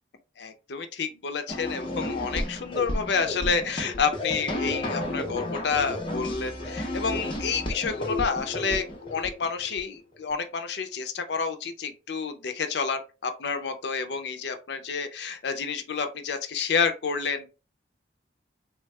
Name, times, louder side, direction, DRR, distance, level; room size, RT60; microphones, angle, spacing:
voice 1, 0.4-17.5, left 5 dB, 70° left, 0.5 m, -29 dB
sound 1, 1.5-9.8, left 1 dB, 30° left, 0.6 m, -32 dB
3.4 x 2.2 x 3.2 m
head